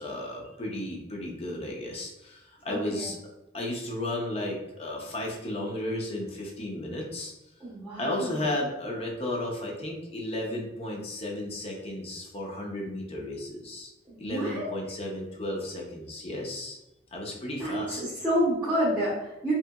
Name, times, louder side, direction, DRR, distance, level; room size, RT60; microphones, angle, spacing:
voice 1, 0.0-3.2 3.5-7.3 8.0-13.9 14.2-16.8 17.1-18.0, left 1 dB, 35° left, -1 dB, 0.6 m, -34 dB
voice 2, 2.7-3.1 7.6-8.4 14.1-14.7 17.6-19.5, equal, 5° right, -9 dB, 0.8 m, -29 dB
3.1 x 2.8 x 2.2 m, 0.95 s
head